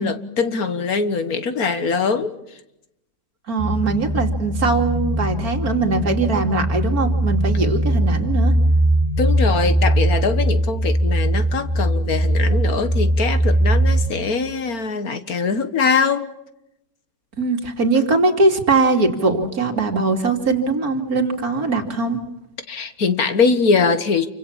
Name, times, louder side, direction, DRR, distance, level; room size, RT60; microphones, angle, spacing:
voice 1, 0.0-2.3 9.2-16.3 22.7-24.3, left 5 dB, 65° left, 10 dB, 1.8 m, -22 dB
voice 2, 3.5-8.5 17.4-22.2, right 3 dB, 60° right, 5 dB, 3.0 m, -21 dB
sound 1, 3.6-14.1, right 1 dB, 25° left, 2.6 m, -20 dB
28.5 x 25.0 x 7.3 m, 0.86 s
omnidirectional pair, 1.7 m